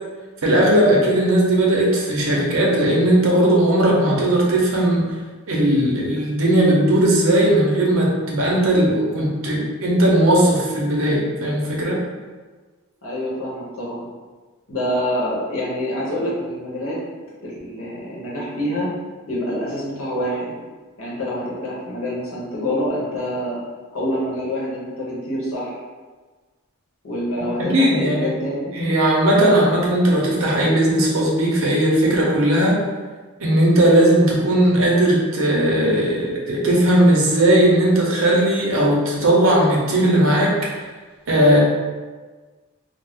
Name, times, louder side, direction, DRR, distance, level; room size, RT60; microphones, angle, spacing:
voice 1, 0.4-5.1 5.5-12.0 27.7-28.3 28.7-32.8 33.4-40.5 41.3-41.6, right 1 dB, 70° right, -3 dB, 0.7 m, -17 dB
voice 2, 13.0-14.1 14.7-17.0 17.4-18.9 19.3-20.5 21.0-23.6 23.9-25.8 27.0-28.7, equal, 75° left, -6 dB, 0.8 m, -26 dB
2.4 x 2.0 x 3.4 m, 1.4 s
head